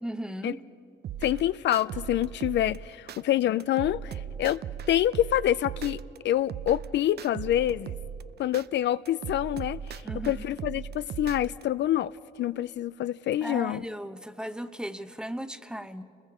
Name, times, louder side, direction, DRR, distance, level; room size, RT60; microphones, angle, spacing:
voice 1, 0.0-0.6 10.0-10.4 13.4-16.0, equal, 5° right, 0.9 m, -36 dB
sound 1, 1.0-3.2 3.6-6.2 6.5-8.7 9.1-11.6, right 8 dB, 55° right, 0.5 m, -38 dB
voice 2, 1.2-4.6 4.9-8.0 8.4-12.1 12.4-13.8, left 12 dB, 65° left, 0.4 m, -27 dB
30.0 x 21.0 x 4.9 m
cardioid pair, 90°, 20 cm